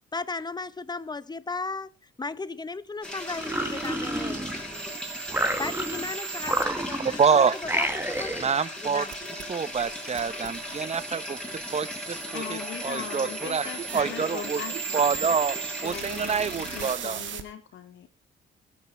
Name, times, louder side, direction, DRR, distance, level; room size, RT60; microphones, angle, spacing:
voice 1, 0.1-1.9 2.2-4.5 5.6-8.4 8.8-9.1, left 3 dB, 20° left, 0.9 m, -35 dB
sound 1, 3.0-16.9, left 1 dB, 5° left, 6.6 m, -37 dB
sound 2, 3.3-4.8 5.3-6.1 6.4-7.2 7.6-8.5, right 1 dB, 10° right, 1.7 m, -30 dB
sound 3, 4.7-6.6 9.1-17.4, right 10 dB, 70° right, 1.7 m, -38 dB
voice 2, 7.0-7.6 8.4-13.7 13.9-14.6 14.9-15.6 15.8-17.2, right 6 dB, 35° right, 0.8 m, -27 dB
voice 3, 12.3-15.4 15.8-16.4 16.7-18.1, left 9 dB, 75° left, 2.7 m, -39 dB
20.0 x 8.7 x 3.4 m
cardioid pair, 90°, 20 cm